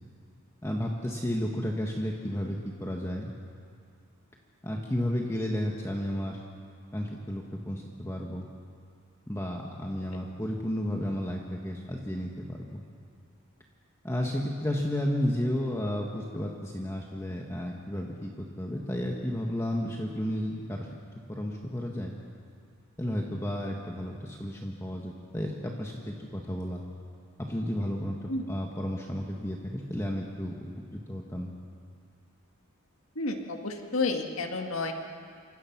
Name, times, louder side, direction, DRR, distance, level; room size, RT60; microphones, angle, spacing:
voice 1, 0.6-3.3 4.6-6.4 6.9-8.5 9.3-12.9 14.0-18.3 18.6-20.9 21.3-22.2 23.0-26.8 27.4-30.5 31.1-31.5, equal, 15° left, 0 dB, 1.6 m, -32 dB
voice 2, 33.2-34.9, left 3 dB, 70° left, 3 dB, 2.0 m, -31 dB
28.0 x 25.5 x 6.1 m, 2.4 s
head